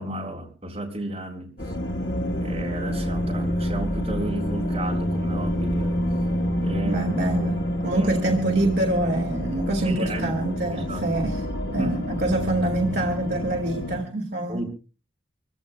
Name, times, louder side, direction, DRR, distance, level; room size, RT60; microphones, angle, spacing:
voice 1, 0.0-1.5 2.4-6.1 6.6-7.1 7.9-8.1 9.8-10.3 10.7-11.0 11.8-12.0 14.5-14.7, right 1 dB, 30° right, 3.9 m, -33 dB
sound 1, 1.6-14.0, equal, 60° left, 1.9 m, -27 dB
voice 2, 6.9-7.6 7.8-11.5 11.7-14.6, right 1 dB, 55° right, 2.0 m, -25 dB
25.5 x 15.5 x 2.2 m
head